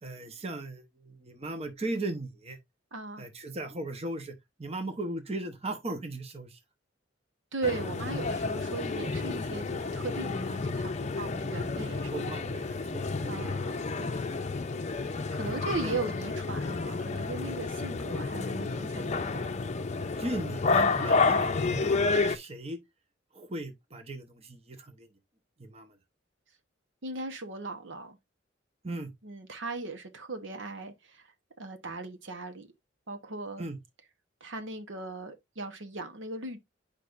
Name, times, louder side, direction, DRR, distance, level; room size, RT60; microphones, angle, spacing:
voice 1, 0.0-2.6 3.2-4.3 4.6-6.6 12.1-13.5 15.4-16.0 20.2-22.8 23.3-25.1 25.6-26.0 28.8-29.1 33.6-33.8, right 2 dB, 35° right, 0.9 m, -37 dB
voice 2, 2.9-3.2 7.5-12.4 13.3-14.2 14.7-19.6 27.0-28.2 29.2-31.3 31.6-32.7 33.1-33.6 34.4-36.6, right 3 dB, 90° right, 1.1 m, -38 dB
sound 1, 7.6-22.4, left 4 dB, 40° left, 0.6 m, -30 dB
8.6 x 5.1 x 2.5 m
head